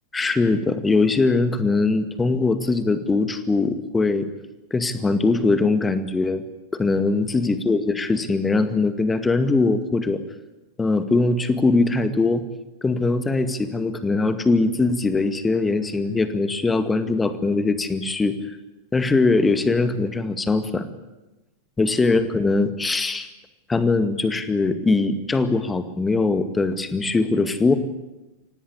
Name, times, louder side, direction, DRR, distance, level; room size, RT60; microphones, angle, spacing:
voice 1, 0.1-4.3 4.7-6.4 6.7-10.2 10.8-12.4 12.8-18.6 18.9-20.9 21.8-23.3 23.7-27.7, left 3 dB, 10° left, 10 dB, 2.1 m, -21 dB
25.5 x 18.0 x 8.5 m, 1.1 s
figure-of-eight pair, 90°, 0 cm